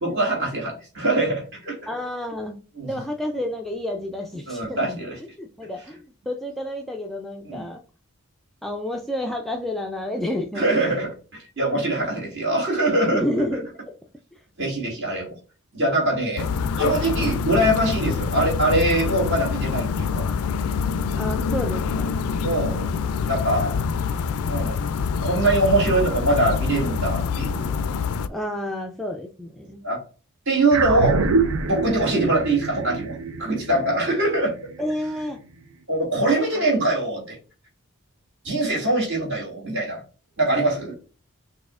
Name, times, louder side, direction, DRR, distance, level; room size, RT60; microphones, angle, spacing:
voice 1, 0.0-1.8 2.8-2.9 4.5-5.2 7.4-7.7 10.6-13.2 14.6-15.4 15.7-16.5 16.8-20.3 22.4-22.9 23.3-23.8 24.5-24.8 25.2-27.7 29.8-30.0 30.5-31.2 31.6-34.6 35.9-37.4 38.4-40.0 40.4-40.9, right 2 dB, 55° right, -2 dB, 2.2 m, -23 dB
voice 2, 1.9-5.0 5.4-7.8 8.6-11.0 13.1-13.7 14.3-14.4 21.1-22.2 28.3-29.9 34.8-35.4 36.5-36.6, left 1 dB, ahead, 2 dB, 0.3 m, -30 dB
sound 1, 16.4-28.3, left 5 dB, 80° left, 0.3 m, -25 dB
sound 2, 30.7-35.3, right 3 dB, 75° right, 0.6 m, -26 dB
6.2 x 2.7 x 2.4 m, 0.35 s
head